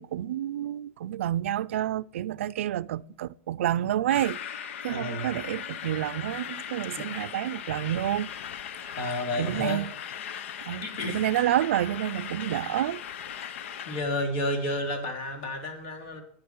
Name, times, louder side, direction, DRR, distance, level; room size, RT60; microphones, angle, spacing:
voice 1, 0.0-8.3 8.8-8.9 9.4-9.9 10.7-13.0, right 12 dB, 85° right, 0.5 m, -29 dB
sound 1, 4.1-14.0, left 9 dB, 80° left, 0.7 m, -38 dB
voice 2, 4.9-5.3 7.0-7.1 9.0-9.8 10.8-11.2 13.8-16.2, left 1 dB, 65° left, 3.4 m, -31 dB
11.5 x 9.2 x 4.6 m
supercardioid pair, 140°, 7 cm